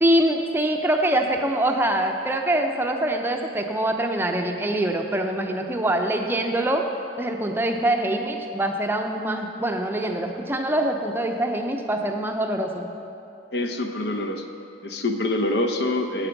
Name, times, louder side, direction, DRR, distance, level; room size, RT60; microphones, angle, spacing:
voice 1, 0.0-6.8 7.2-12.9, right 1 dB, 10° right, 3 dB, 0.6 m, -24 dB
voice 2, 13.5-14.4 14.8-16.3, left 2 dB, 70° left, 5 dB, 0.8 m, -25 dB
9.0 x 9.0 x 5.9 m, 2.7 s
head